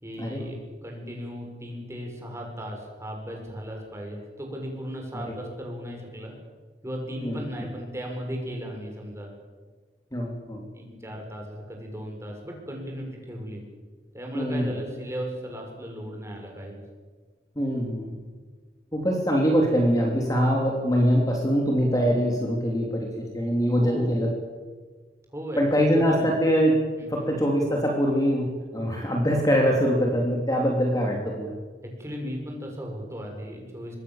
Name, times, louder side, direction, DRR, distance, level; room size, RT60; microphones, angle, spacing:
voice 1, 0.0-6.3 6.8-9.3 10.7-13.6 14.1-16.8 23.8-24.2 25.3-25.6 25.9-26.3 27.0-27.3 31.8-34.0, equal, 15° right, 1 dB, 6.6 m, -36 dB
voice 2, 7.2-7.7 10.1-10.6 14.3-14.7 17.6-18.2 18.9-24.3 25.6-31.6, equal, 20° left, 0 dB, 3.4 m, -23 dB
26.0 x 22.0 x 7.5 m, 1.4 s
head